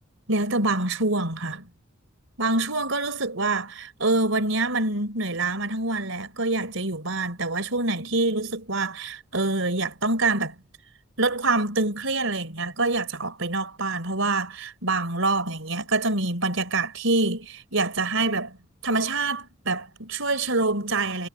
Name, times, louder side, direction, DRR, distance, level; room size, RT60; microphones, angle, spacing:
voice 1, 0.3-1.7 2.4-10.6 11.2-18.6 18.8-21.3, right 2 dB, 70° right, 4.1 m, -26 dB
head